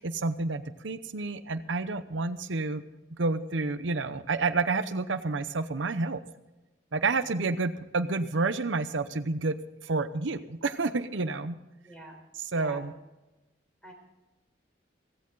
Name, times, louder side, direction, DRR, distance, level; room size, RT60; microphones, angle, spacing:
voice 1, 0.0-2.8 3.2-6.2 6.9-9.6 9.8-11.6 12.3-12.9, right 3 dB, 85° right, 11 dB, 0.8 m, -29 dB
voice 2, 11.8-12.2 12.5-12.8 13.8-13.9, right 2 dB, 5° left, 1 dB, 4.2 m, -45 dB
16.5 x 16.0 x 3.9 m, 1.0 s
head